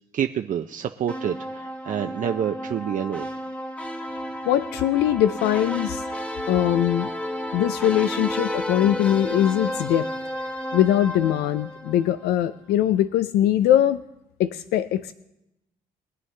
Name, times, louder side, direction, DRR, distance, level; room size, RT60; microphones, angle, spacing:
voice 1, 0.1-3.3, right 9 dB, 55° right, 6 dB, 0.6 m, -28 dB
sound 1, 1.1-12.3, equal, 10° left, 1.1 m, -32 dB
voice 2, 4.4-6.0 6.5-7.1 7.5-10.1 10.7-14.0 14.4-15.1, left 11 dB, 85° left, 12 dB, 0.4 m, -21 dB
22.5 x 9.4 x 3.3 m, 0.89 s
cardioid pair, 90°, 16 cm